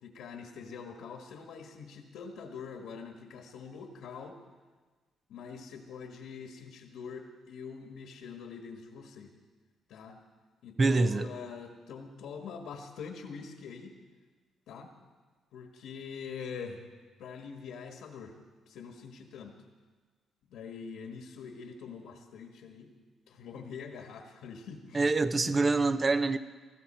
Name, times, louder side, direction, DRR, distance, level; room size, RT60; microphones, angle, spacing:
voice 1, 0.0-4.4 5.3-9.3 9.9-10.2 10.6-14.0 14.7-14.9 15.5-16.8 17.2-18.3 18.7-19.6 20.5-22.9 23.3-25.1 25.4-25.6, left 6 dB, 85° left, 4 dB, 1.4 m, -44 dB
voice 2, 10.8-11.3 24.9-26.4, right 3 dB, 30° right, 12 dB, 0.7 m, -25 dB
18.5 x 15.0 x 4.4 m, 1.4 s
cardioid pair, 90°, 0 cm